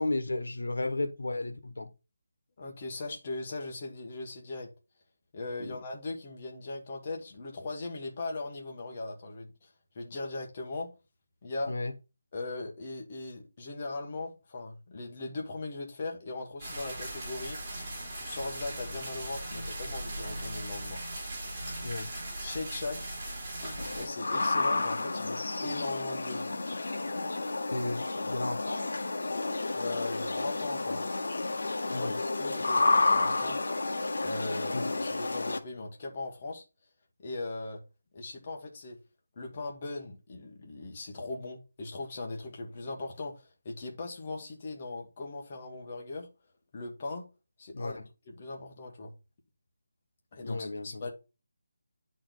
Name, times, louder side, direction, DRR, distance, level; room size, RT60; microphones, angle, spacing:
voice 1, 0.0-1.9 5.6-5.8 11.7-11.9 21.8-22.1 27.7-28.9 31.9-32.2 34.7-34.8 47.7-48.0 50.4-51.0, left 2 dB, 85° left, 1.3 m, -34 dB
voice 2, 2.6-4.7 5.3-9.7 9.9-10.9 11.4-11.7 12.3-17.6 18.1-21.0 22.4-23.1 23.6-26.4 29.7-31.1 32.0-33.6 34.2-36.6 37.2-37.8 38.1-39.0 39.4-46.3 46.7-47.3 47.6-48.0 48.3-49.1 50.3-51.1, left 2 dB, 25° left, 1.4 m, -39 dB
sound 1, 16.6-24.1, right 1 dB, 25° right, 3.3 m, -39 dB
sound 2, 23.8-35.6, left 3 dB, 65° left, 1.1 m, -31 dB
9.8 x 4.3 x 3.9 m
figure-of-eight pair, 175°, 0 cm